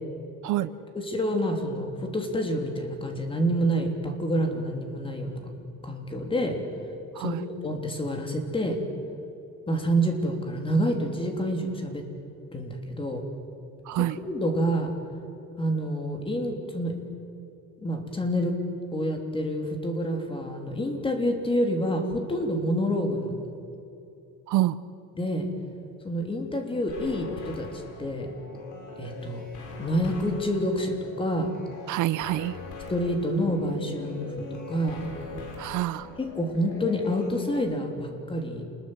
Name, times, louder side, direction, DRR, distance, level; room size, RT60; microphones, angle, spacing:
voice 1, 0.9-5.4 5.8-6.6 7.2-7.4 7.6-8.8 9.7-12.1 12.5-13.2 13.9-14.9 15.6-16.9 17.8-18.5 18.9-23.5 25.1-25.5 26.0-28.3 29.0-29.4 29.8-31.5 32.9-35.0 36.2-38.6, equal, 15° left, 4 dB, 3.2 m, -28 dB
voice 2, 13.9-14.2 24.5-24.8 31.9-32.6 35.6-36.1, right 15 dB, 65° right, 15 dB, 0.8 m, -26 dB
sound 1, 26.9-37.6, left 3 dB, 65° left, 6.9 m, -41 dB
28.0 x 20.5 x 8.0 m, 2.8 s
cardioid pair, 150°, 32 cm